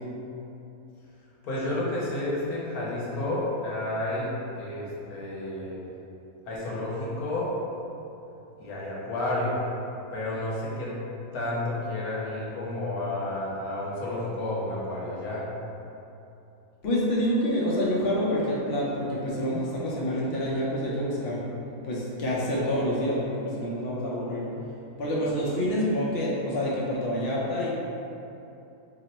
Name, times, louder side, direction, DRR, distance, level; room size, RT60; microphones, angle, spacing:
voice 1, 1.4-4.3 4.6-5.8 6.5-7.5 8.6-9.6 10.1-10.9 11.3-15.4, left 1 dB, 80° left, -6 dB, 1.2 m, -31 dB
voice 2, 16.8-21.4 21.8-24.4 25.0-27.7, equal, 55° left, -6 dB, 0.7 m, -27 dB
2.9 x 2.1 x 4.0 m, 2.8 s
omnidirectional pair, 1.6 m